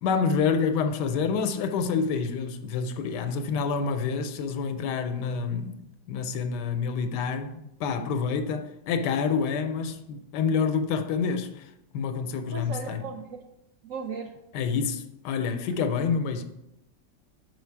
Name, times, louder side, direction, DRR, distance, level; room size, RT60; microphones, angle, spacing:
voice 1, 0.0-11.6 11.9-13.0 14.5-16.4, left 5 dB, 85° left, 1.2 m, -28 dB
voice 2, 12.5-13.4 13.8-14.3, right 5 dB, 70° right, 0.8 m, -36 dB
5.0 x 4.8 x 4.6 m
omnidirectional pair, 1.8 m